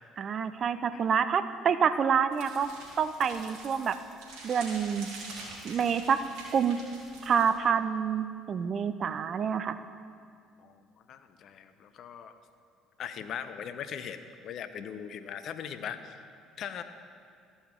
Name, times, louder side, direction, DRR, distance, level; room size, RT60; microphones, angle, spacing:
voice 1, 0.2-2.7 3.0-4.0 4.4-5.1 5.6-6.2 6.5-6.8 7.3-9.8, right 7 dB, 45° right, 12 dB, 0.4 m, -27 dB
sound 1, 2.3-7.5, right 2 dB, 65° right, 2.6 m, -46 dB
voice 2, 11.1-12.3 13.0-16.2 16.6-16.8, left 8 dB, 50° left, 10 dB, 0.5 m, -40 dB
13.0 x 5.6 x 4.5 m, 2.3 s
figure-of-eight pair, 55°, 0 cm